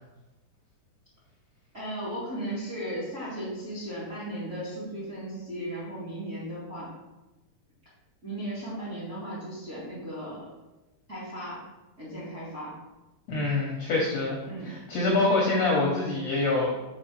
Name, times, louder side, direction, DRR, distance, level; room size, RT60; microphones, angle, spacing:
voice 1, 1.7-6.9 8.2-10.5 11.1-11.6 12.0-12.8 14.5-14.8, right 1 dB, 30° right, -8 dB, 1.7 m, -36 dB
voice 2, 13.3-14.4 14.6-16.7, left 2 dB, 70° left, -2 dB, 1.6 m, -25 dB
4.8 x 4.8 x 4.5 m, 1.1 s
omnidirectional pair, 3.9 m